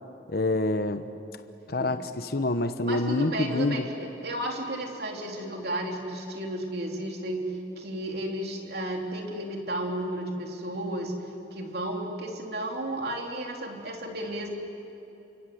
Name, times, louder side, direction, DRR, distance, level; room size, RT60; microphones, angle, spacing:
voice 1, 0.3-1.1 1.7-3.8, left 2 dB, 55° left, 9 dB, 1.0 m, -27 dB
voice 2, 2.8-11.2 11.5-14.5, right 1 dB, 60° right, 1 dB, 3.5 m, -33 dB
29.0 x 25.5 x 8.0 m, 2.8 s
head